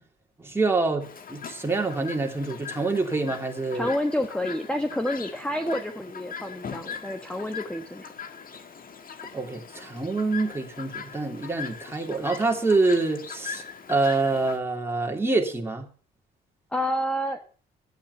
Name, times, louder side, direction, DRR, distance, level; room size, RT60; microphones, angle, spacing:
voice 1, 0.4-3.9 9.3-13.6 13.9-15.9, right 3 dB, 10° right, 2.8 m, -26 dB
Chirp tweet, 1.0-14.6, left 6 dB, 45° left, 1.6 m, -40 dB
voice 2, 3.7-8.1 16.7-17.4, left 1 dB, 5° left, 1.3 m, -29 dB
12.0 x 9.0 x 6.9 m
cardioid pair, 90°, 20 cm